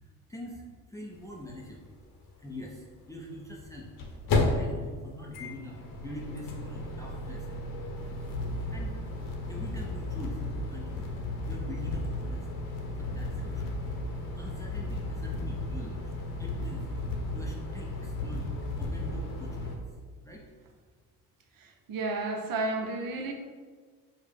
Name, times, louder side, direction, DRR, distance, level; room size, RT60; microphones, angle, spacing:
voice 1, 0.3-1.9 2.4-7.6 8.7-9.0 9.5-11.2 11.4-12.5 13.0-13.7 14.3-16.1 16.4-19.8 20.2-20.4, left 1 dB, 5° left, -2 dB, 0.4 m, -44 dB
sound 1, 1.2-1.3 1.5-1.6 3.5-19.8, left 2 dB, 45° left, 0.8 m, -34 dB
voice 2, 21.6-23.3, right 2 dB, 45° right, 4 dB, 0.6 m, -32 dB
4.7 x 2.1 x 3.4 m, 1.5 s
hypercardioid pair, 60°, 48 cm